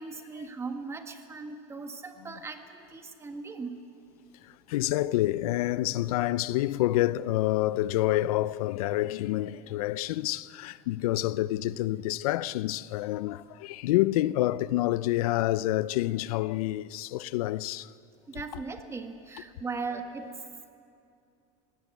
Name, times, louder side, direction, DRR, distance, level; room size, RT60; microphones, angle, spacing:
voice 1, 0.0-3.8 18.3-20.4, right 4 dB, 15° right, 1.5 m, -38 dB
voice 2, 4.4-17.9, left 16 dB, 90° left, 0.5 m, -28 dB
19.5 x 17.5 x 8.2 m
supercardioid pair, 140°, 18 cm